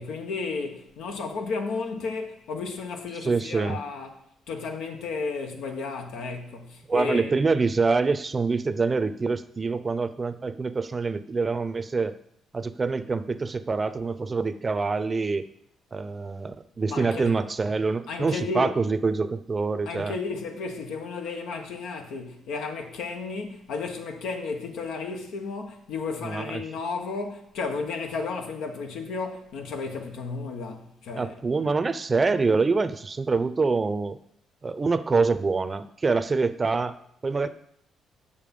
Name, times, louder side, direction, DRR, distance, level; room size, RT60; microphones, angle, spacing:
voice 1, 0.0-4.1 4.5-7.3 16.9-17.3 18.1-18.7 19.8-31.4, left 4 dB, 85° left, 1.3 m, -33 dB
voice 2, 3.2-3.8 6.9-12.2 12.5-15.5 15.9-20.1 26.2-26.6 31.2-34.2 34.6-37.0 37.2-37.5, right 4 dB, 30° right, 0.6 m, -25 dB
7.1 x 6.7 x 5.4 m
cardioid pair, 90°, 0 cm